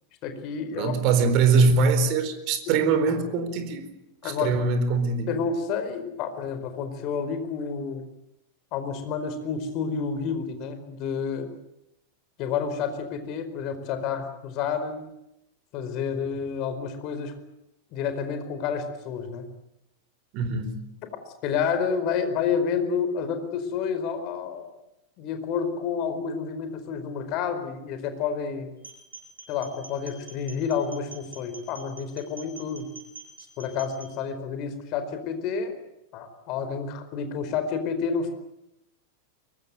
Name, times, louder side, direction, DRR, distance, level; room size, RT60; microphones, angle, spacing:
voice 1, 0.2-0.9 4.2-4.5 5.3-8.0 8.7-11.5 12.4-15.1 15.7-17.4 17.9-19.4 21.4-24.7 25.2-28.7 29.5-32.9 33.6-35.8 36.1-38.3, left 6 dB, 40° left, 8 dB, 4.7 m, -29 dB
voice 2, 0.8-3.9 4.2-5.3 20.3-20.8, right 4 dB, 40° right, 10 dB, 4.3 m, -22 dB
sound 1, 28.8-34.1, right 4 dB, 75° right, 7.1 m, -46 dB
24.0 x 22.0 x 9.3 m, 0.85 s
figure-of-eight pair, 90°, 0 cm